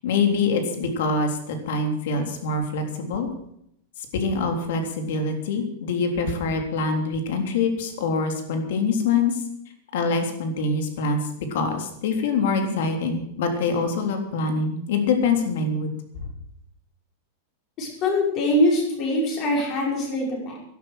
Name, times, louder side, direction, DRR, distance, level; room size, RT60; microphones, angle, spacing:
voice 1, 0.0-3.3 4.1-9.4 9.9-15.9, left 4 dB, 65° left, 4 dB, 3.4 m, -24 dB
voice 2, 17.8-20.6, left 1 dB, 30° left, -1 dB, 5.5 m, -23 dB
12.0 x 12.0 x 8.0 m, 0.73 s
supercardioid pair, 165°, 0 cm